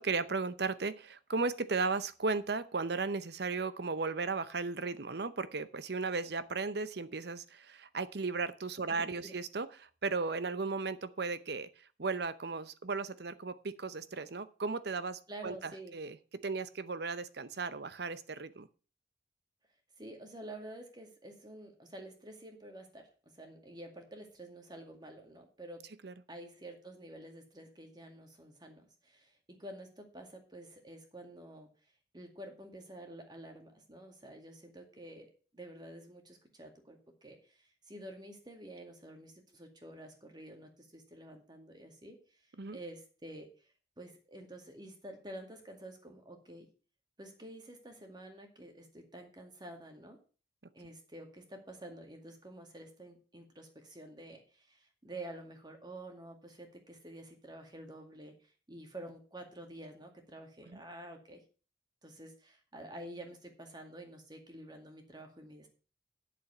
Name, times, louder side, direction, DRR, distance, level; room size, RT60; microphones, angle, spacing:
voice 1, 0.0-16.2 16.4-18.7 26.0-26.1 42.6-42.8 50.8-50.9 60.6-60.8, right 4 dB, 60° right, 14 dB, 0.8 m, -36 dB
voice 2, 8.9-9.4 15.3-15.9 20.0-23.1 23.4-25.8 26.3-31.7 32.1-35.3 35.5-37.6 37.9-42.2 42.7-43.5 44.0-46.7 47.2-50.2 50.7-58.3 58.7-61.4 62.0-65.7, right 1 dB, 25° right, 4 dB, 2.2 m, -49 dB
8.4 x 7.2 x 6.7 m, 0.38 s
head